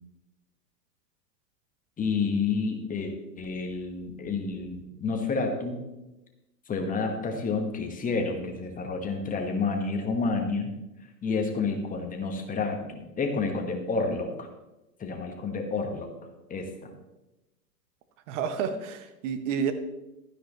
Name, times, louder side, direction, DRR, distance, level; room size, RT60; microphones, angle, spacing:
voice 1, 2.0-5.8 6.7-10.7 11.2-14.5 15.0-16.1 16.5-16.7, left 4 dB, 15° left, 3 dB, 1.5 m, -29 dB
voice 2, 18.3-19.7, right 7 dB, 45° right, 9 dB, 1.3 m, -30 dB
12.5 x 9.9 x 3.2 m, 0.98 s
figure-of-eight pair, 100°, 50 cm